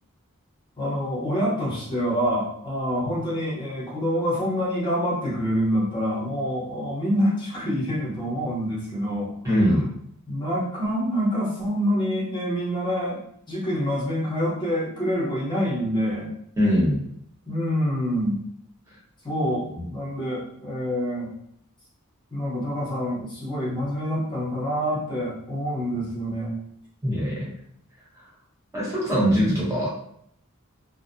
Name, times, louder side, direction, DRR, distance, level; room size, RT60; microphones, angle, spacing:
voice 1, 0.8-9.3 10.3-13.2 13.5-16.3 17.5-18.4 19.2-21.3 22.3-26.5, equal, 20° left, -7 dB, 0.8 m, -26 dB
voice 2, 9.4-9.9 16.6-17.0 19.7-19.8 27.0-27.5 28.7-29.9, equal, 15° right, -6 dB, 0.8 m, -22 dB
2.5 x 2.0 x 2.5 m, 0.70 s
head